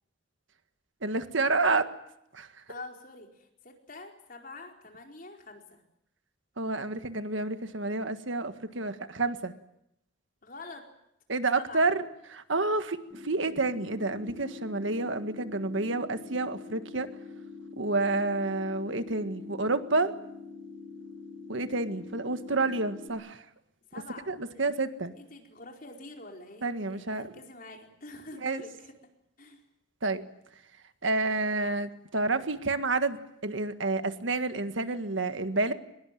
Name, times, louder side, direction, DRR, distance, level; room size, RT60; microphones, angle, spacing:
voice 1, 1.0-1.9 2.3-2.5 6.6-9.5 11.3-17.1 17.8-20.1 21.5-23.4 24.3-25.1 26.6-27.3 28.4-28.6 30.0-30.2 31.0-33.2 33.4-35.7, right 3 dB, 70° right, 9 dB, 1.7 m, -29 dB
voice 2, 2.7-5.8 10.4-10.9 11.5-11.9 23.9-24.7 25.1-28.9 29.4-29.6, left 2 dB, 45° left, 2 dB, 4.5 m, -46 dB
sound 1, 13.1-23.1, left 4 dB, ahead, 4.2 m, -45 dB
23.0 x 21.0 x 9.2 m, 0.79 s
head